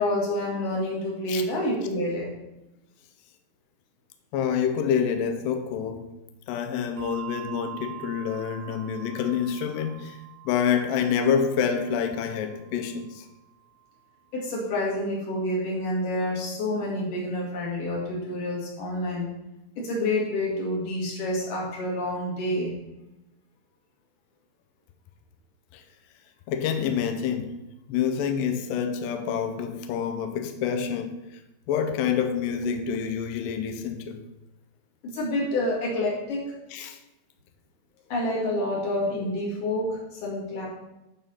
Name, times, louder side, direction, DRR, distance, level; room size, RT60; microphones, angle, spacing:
voice 1, 0.0-2.3 14.3-19.3 19.8-22.8 35.0-36.5 38.1-40.7, left 1 dB, 55° left, -4 dB, 3.5 m, -28 dB
voice 2, 4.3-6.1 6.5-10.2 10.4-13.3 25.7-25.8 26.5-27.5 27.9-31.4 31.7-34.2 36.7-37.0, left 7 dB, 85° left, 7 dB, 1.9 m, -27 dB
Bell, 7.0-13.8, right 14 dB, 90° right, 2.8 m, -45 dB
11.0 x 4.0 x 5.7 m, 0.95 s
omnidirectional pair, 4.7 m